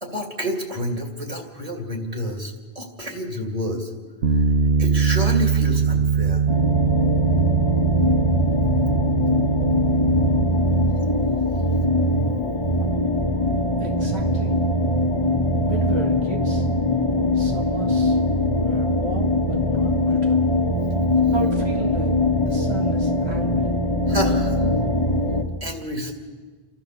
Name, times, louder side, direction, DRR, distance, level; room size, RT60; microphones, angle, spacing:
voice 1, 0.0-3.9 4.3-4.4 4.8-6.4 24.1-24.6 25.6-26.1, equal, 35° right, 2 dB, 2.7 m, -29 dB
Bass guitar, 4.2-10.5, right 6 dB, 70° right, 1.4 m, -21 dB
sound 1, 6.5-25.4, left 1 dB, 30° left, 1.3 m, -21 dB
voice 2, 13.8-14.6 15.7-16.7 17.3-18.2 18.6-20.5 21.3-22.1 22.4-23.7, right 3 dB, 90° right, 1 dB, 2.1 m, -33 dB
30.0 x 13.0 x 6.9 m, 1.4 s
omnidirectional pair, 1.1 m